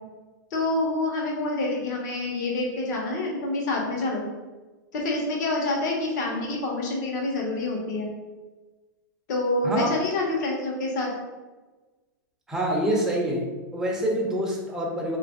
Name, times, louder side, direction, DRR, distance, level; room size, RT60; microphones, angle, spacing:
voice 1, 0.5-4.2 4.9-8.1 9.3-11.1, left 2 dB, 60° left, -1 dB, 1.0 m, -27 dB
voice 2, 12.5-15.2, equal, 5° right, -2 dB, 0.6 m, -26 dB
2.8 x 2.5 x 3.6 m, 1.2 s
hypercardioid pair, 140°, 11 cm